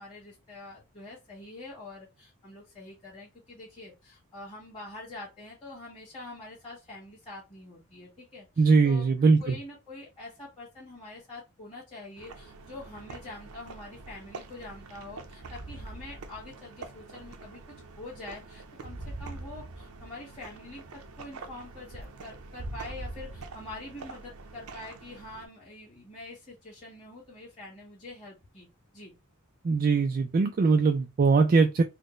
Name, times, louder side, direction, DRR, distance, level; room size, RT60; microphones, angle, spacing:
voice 1, 0.0-9.0 9.4-28.7 28.9-29.1, left 2 dB, 25° left, 1.7 m, -45 dB
voice 2, 8.6-9.4 29.6-31.8, right 4 dB, 40° right, 0.3 m, -21 dB
sound 1, 12.2-25.5, right 2 dB, 70° right, 0.6 m, -44 dB
4.1 x 2.1 x 3.1 m
head